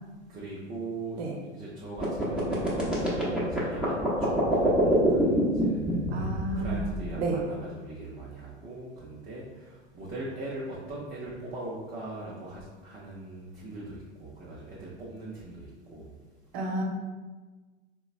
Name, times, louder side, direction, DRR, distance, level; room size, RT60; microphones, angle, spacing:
voice 1, 0.3-1.2 1.5-6.1 6.5-16.1, right 2 dB, 25° right, -6 dB, 0.6 m, -40 dB
sound 1, 2.0-7.2, right 1 dB, ahead, 0.9 m, -26 dB
voice 2, 6.1-6.8 7.2-7.4 16.5-16.8, right 2 dB, 60° right, 0 dB, 0.8 m, -31 dB
3.9 x 2.2 x 2.4 m, 1.3 s
figure-of-eight pair, 85°, 36 cm